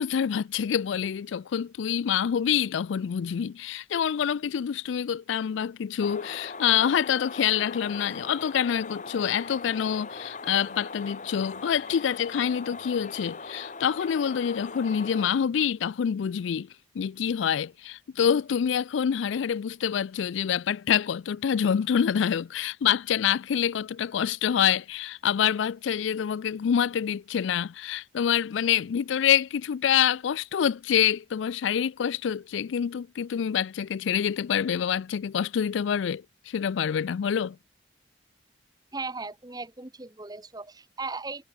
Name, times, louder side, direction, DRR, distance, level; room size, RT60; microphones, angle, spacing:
voice 1, 0.0-16.7 16.9-37.6, left 8 dB, 75° left, 0.4 m, -26 dB
sound 1, 6.0-15.3, left 4 dB, 40° left, 2.3 m, -40 dB
voice 2, 38.9-41.5, right 3 dB, 20° right, 1.1 m, -37 dB
head